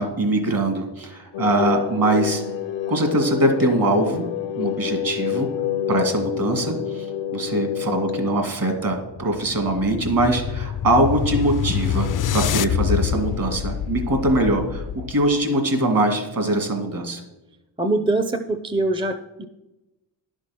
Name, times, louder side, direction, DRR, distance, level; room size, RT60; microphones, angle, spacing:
voice 1, 0.0-2.4 2.9-4.3 4.6-5.5 5.9-17.2, right 1 dB, 50° right, 5 dB, 2.3 m, -22 dB
sound 1, 1.3-8.4, left 10 dB, 80° left, 0.7 m, -28 dB
sound 2, 9.0-15.3, left 10 dB, 45° left, 0.4 m, -26 dB
voice 2, 17.8-19.5, right 2 dB, 10° right, 8 dB, 0.6 m, -23 dB
11.0 x 6.2 x 6.0 m, 1.0 s
cardioid pair, 85°, 44 cm